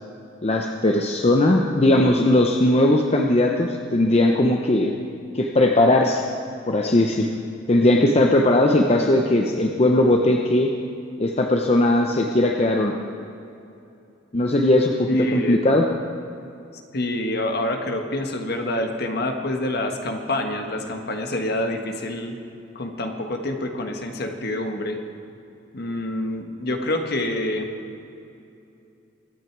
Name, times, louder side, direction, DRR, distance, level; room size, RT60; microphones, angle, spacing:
voice 1, 0.4-4.9 5.3-6.3 6.7-7.3 7.7-10.7 11.2-13.0 14.3-15.9, left 1 dB, 35° left, 2 dB, 0.7 m, -19 dB
voice 2, 15.1-15.6 16.9-22.4 22.7-25.0 25.7-27.7, left 1 dB, 55° left, 4 dB, 1.4 m, -27 dB
23.0 x 9.0 x 4.6 m, 2.7 s
head